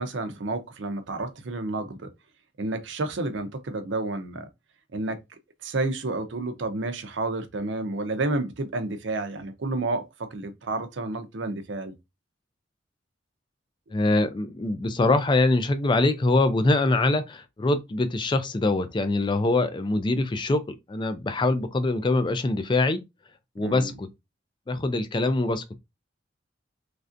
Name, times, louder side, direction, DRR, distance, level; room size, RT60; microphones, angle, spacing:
voice 1, 0.0-2.1 2.6-4.5 4.9-5.2 5.6-11.9 23.6-23.9, right 2 dB, 65° right, 0.6 m, -30 dB
voice 2, 13.9-20.6 20.9-23.0 23.6-24.1 24.7-25.8, left 2 dB, 25° left, 0.4 m, -23 dB
3.2 x 2.5 x 2.5 m
head